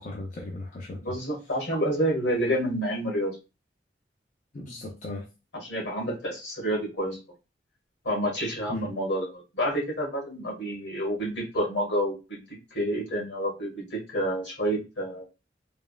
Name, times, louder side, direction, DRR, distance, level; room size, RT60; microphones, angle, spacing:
voice 1, 0.0-1.1 4.5-5.2 8.7-8.9, left 2 dB, 45° left, -1 dB, 0.5 m, -37 dB
voice 2, 0.9-3.4 5.5-7.2 8.0-15.3, equal, 80° left, -2 dB, 1.6 m, -29 dB
3.4 x 2.0 x 2.2 m, 0.28 s
head